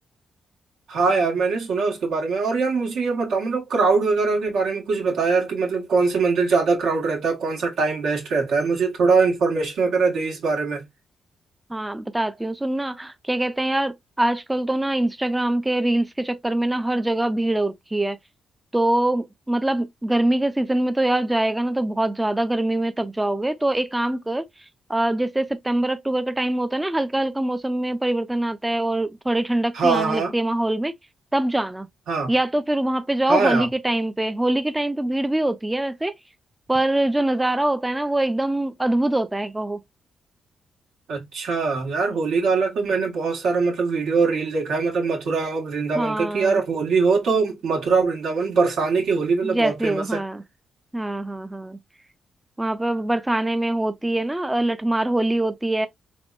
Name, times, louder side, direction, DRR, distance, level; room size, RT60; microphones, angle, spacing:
voice 1, 0.9-10.8 29.7-30.3 32.1-32.3 33.3-33.7 41.1-50.2, right 4 dB, 80° right, 1.4 m, -22 dB
voice 2, 11.7-18.2 18.7-24.4 24.9-30.9 31.3-31.9 32.3-36.1 36.7-39.8 46.0-46.6 49.4-50.4 50.9-51.8 52.6-55.9, right 1 dB, 15° right, 0.4 m, -23 dB
3.4 x 3.4 x 2.4 m
cardioid pair, 70°, 0 cm